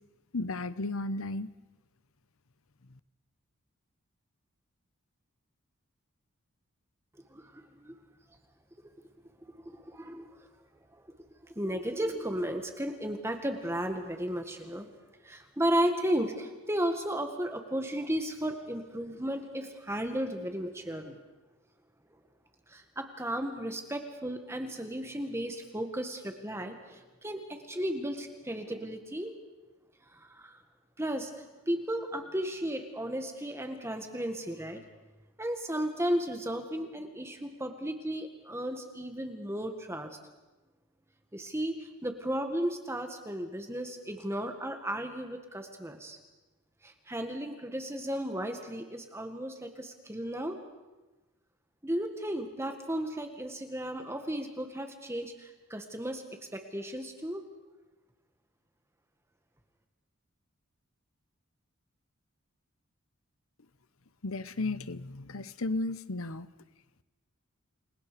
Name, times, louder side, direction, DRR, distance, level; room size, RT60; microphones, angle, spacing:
voice 1, 0.3-1.5 64.2-66.5, left 2 dB, 75° left, 14 dB, 1.0 m, -34 dB
voice 2, 7.3-7.9 9.7-10.3 11.6-14.9 15.2-21.2 22.7-29.3 30.1-30.6 31.0-31.3 31.7-34.8 35.4-40.2 41.3-46.2 46.8-50.6 51.8-56.2 56.5-57.4, right 1 dB, 10° right, 5 dB, 1.7 m, -34 dB
29.5 x 20.0 x 6.9 m, 1.1 s
head